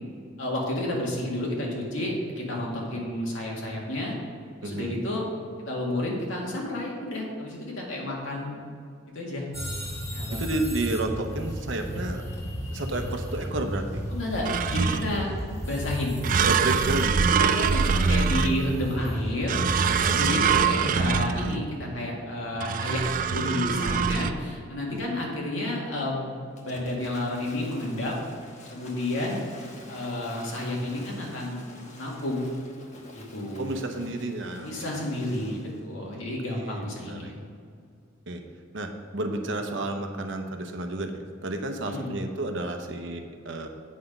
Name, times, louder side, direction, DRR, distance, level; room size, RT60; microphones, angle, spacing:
voice 1, 0.4-4.1 4.6-5.3 5.6-8.6 9.1-9.5 10.1-10.5 14.1-15.3 15.6-16.2 17.4-19.6 20.1-23.1 23.3-26.3 26.6-28.2 28.7-29.5 29.9-31.6 31.9-32.5 33.1-33.6 34.6-37.4 41.8-42.1, left 1 dB, 75° left, -2 dB, 2.0 m, -31 dB
voice 2, 4.6-5.0 10.3-12.2 12.7-14.0 16.4-17.1 19.8-20.3 24.9-25.1 33.6-35.0 36.1-36.2 36.5-37.3 38.3-38.4 38.7-41.1 41.4-43.7, right 2 dB, 65° right, 5 dB, 0.8 m, -31 dB
sound 1, 9.5-21.6, equal, 15° left, 1.8 m, -34 dB
sound 2, 14.4-15.3 16.2-18.9 19.5-21.7 22.6-24.3, right 6 dB, 40° right, 0.3 m, -24 dB
Waves surf / Splash splatter, 26.6-35.8, left 2 dB, 35° left, 1.0 m, -48 dB
8.5 x 5.9 x 5.2 m, 2.2 s
head